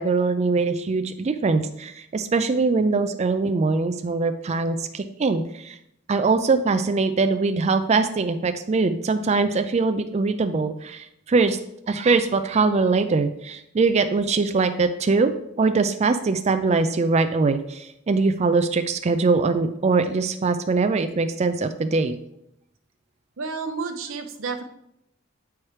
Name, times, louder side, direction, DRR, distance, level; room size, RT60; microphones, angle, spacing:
voice 1, 0.0-5.7 6.1-11.6 11.9-15.3 15.6-22.2, right 4 dB, 35° right, 9 dB, 0.4 m, -22 dB
voice 2, 23.4-24.6, right 4 dB, 85° right, 6 dB, 0.8 m, -30 dB
8.5 x 4.6 x 3.2 m, 0.78 s
head